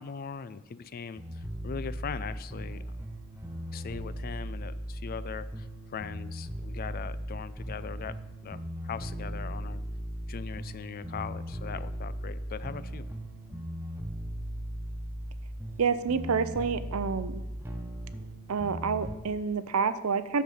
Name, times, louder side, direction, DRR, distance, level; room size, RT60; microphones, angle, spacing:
voice 1, 0.0-2.8 3.7-8.2 8.4-9.8 10.3-13.1, left 6 dB, 40° left, 16 dB, 0.4 m, -40 dB
sound 1, 1.2-19.2, equal, 10° right, 0.8 m, -38 dB
voice 2, 15.8-17.4 18.5-20.4, right 5 dB, 70° right, 14 dB, 0.6 m, -28 dB
9.5 x 6.7 x 5.5 m, 1.0 s
head